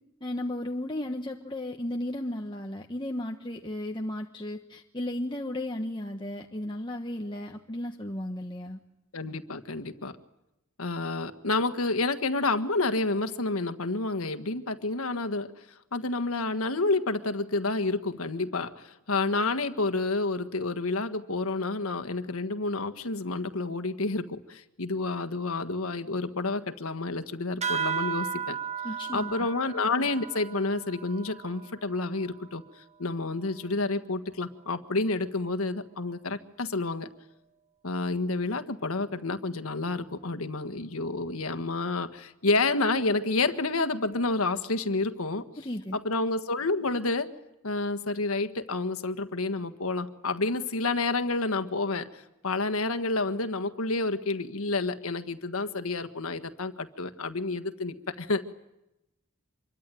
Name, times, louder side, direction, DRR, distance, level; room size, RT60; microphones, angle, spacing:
voice 1, 0.2-8.8 28.8-29.3 45.6-46.0, left 1 dB, 20° left, 2 dB, 1.2 m, -34 dB
voice 2, 9.1-10.2 10.8-15.5 15.9-28.6 29.1-32.6 33.0-37.1 37.8-45.4 45.9-47.3 47.6-58.5, left 3 dB, 80° left, 10 dB, 1.6 m, -29 dB
sound 1, 27.6-32.6, right 7 dB, 30° right, 1.6 m, -35 dB
26.5 x 23.0 x 9.2 m, 0.92 s
head